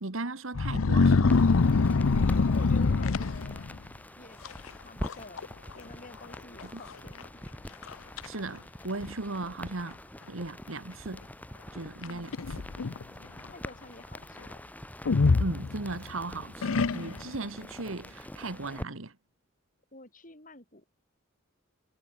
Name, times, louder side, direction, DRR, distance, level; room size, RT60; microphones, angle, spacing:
voice 1, 0.0-1.4 8.2-10.0 10.3-11.3 11.7-12.6 15.4-19.2, right 2 dB, 75° right, 1.7 m, -37 dB
sound 1, 0.5-3.8 4.5-4.7 5.0-5.5 5.7-5.8 6.6-6.7 7.2-7.3 7.8-8.3 9.1-9.2 12.0-13.0 15.1-16.1 16.6-17.4, left 4 dB, 90° left, 0.7 m, -24 dB
sound 2, 1.3-18.8, equal, 10° left, 6.2 m, -45 dB
voice 2, 2.4-3.7 4.2-4.5 4.8-5.5 5.7-7.5 12.0-12.4 13.5-14.6 19.9-20.8, left 2 dB, 40° left, 7.1 m, -50 dB
head